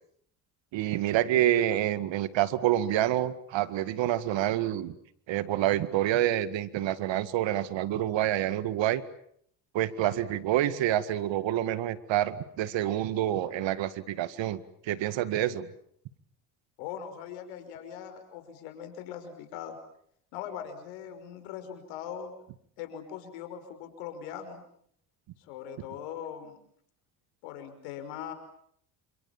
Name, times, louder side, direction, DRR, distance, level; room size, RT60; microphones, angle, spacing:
voice 1, 0.7-4.9 5.3-9.0 9.7-15.7, right 12 dB, 65° right, 14 dB, 2.1 m, -27 dB
voice 2, 16.8-19.8 20.3-22.3 22.8-24.6 25.4-26.6 27.4-28.3, left 9 dB, 80° left, 8 dB, 5.6 m, -40 dB
28.0 x 27.0 x 7.4 m, 0.68 s
hypercardioid pair, 70°, 49 cm